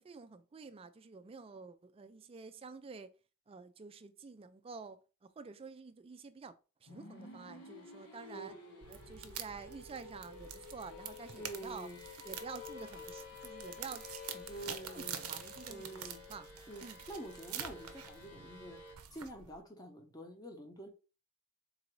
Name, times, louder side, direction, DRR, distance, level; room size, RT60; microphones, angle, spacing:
voice 1, 0.0-3.1 3.5-6.6 6.8-8.5 8.9-11.9 12.2-16.5 16.8-17.0, right 4 dB, 25° right, 0.3 m, -49 dB
sound 1, 6.9-19.0, left 5 dB, 80° left, 1.2 m, -52 dB
voice 2, 8.3-8.9 11.4-12.0 14.5-15.2 15.7-16.2 16.7-18.8 19.1-20.9, right 1 dB, 15° left, 0.8 m, -47 dB
sound 2, 8.8-19.6, right 9 dB, 75° right, 0.6 m, -47 dB
3.9 x 2.6 x 4.5 m
head